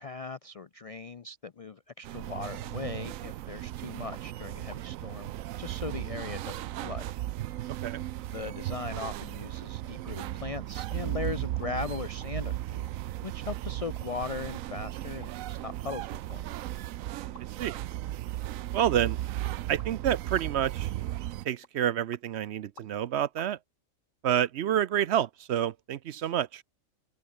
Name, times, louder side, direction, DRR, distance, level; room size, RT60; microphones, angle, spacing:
voice 1, 0.0-5.3 5.6-7.1 7.5-7.8 8.3-12.9 13.2-16.4, left 4 dB, 50° left, 0.4 m, -39 dB
sound 1, 2.0-21.5, right 14 dB, 90° right, 1.0 m, -36 dB
sound 2, 4.1-4.3 4.7-4.8 5.4-6.0 6.5-6.6 7.1-7.2 7.9-8.0 8.5-8.6 9.0-9.2 9.4-9.5 9.8-10.0 10.4-10.5 10.9-11.1 11.4-11.7 12.0-13.0 13.5-14.1 14.5-14.6 15.2-15.3 15.8-17.6 17.9-18.0 18.8-19.0 19.8-20.1 20.4-20.7 21.1-21.3 21.6-22.2 22.8-23.1 23.4-23.5, left 2 dB, 70° left, 7.1 m, -54 dB
voice 2, 18.7-19.2 19.7-20.9 21.4-23.6 24.2-26.6, right 10 dB, 65° right, 0.8 m, -28 dB
open air
omnidirectional pair, 1.3 m